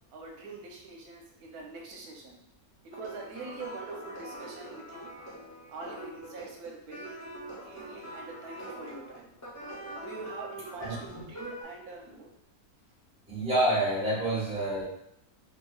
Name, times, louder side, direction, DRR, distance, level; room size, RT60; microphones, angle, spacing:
voice 1, 0.1-2.4 2.8-5.1 5.7-7.3 7.6-9.3 10.0-12.3, right 3 dB, 80° right, 0 dB, 1.2 m, -43 dB
sound 1, 2.9-11.6, right 1 dB, 25° left, 0.4 m, -44 dB
voice 2, 13.3-14.8, right 1 dB, 5° right, -8 dB, 0.9 m, -27 dB
2.9 x 2.6 x 2.3 m, 0.75 s
omnidirectional pair, 1.6 m